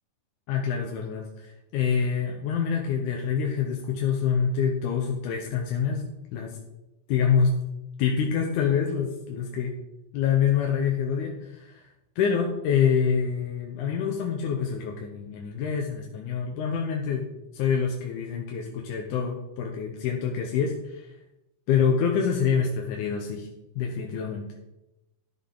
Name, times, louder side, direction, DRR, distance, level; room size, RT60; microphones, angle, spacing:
voice 1, 0.5-6.6 7.1-7.5 8.0-9.7 10.1-11.9 12.2-17.3 17.5-21.1 21.7-23.5 23.8-24.5, left 7 dB, 85° left, 1 dB, 2.3 m, -26 dB
12.5 x 5.4 x 3.7 m, 0.93 s
omnidirectional pair, 3.5 m